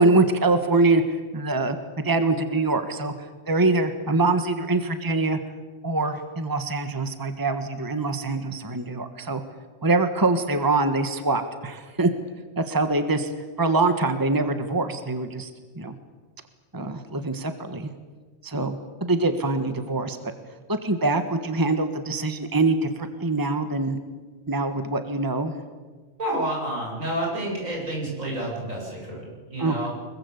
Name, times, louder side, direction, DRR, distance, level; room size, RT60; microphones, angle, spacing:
voice 1, 0.0-3.1 3.5-5.4 5.8-9.4 9.8-12.1 12.6-13.3 13.6-15.5 15.7-15.9 16.7-17.9 18.4-20.2 20.7-24.0 24.5-25.6 29.6-29.9, right 3 dB, 15° right, 8 dB, 1.5 m, -24 dB
voice 2, 26.2-29.9, right 1 dB, 75° right, -2 dB, 8.5 m, -29 dB
25.0 x 22.5 x 8.3 m, 1.4 s
omnidirectional pair, 1.4 m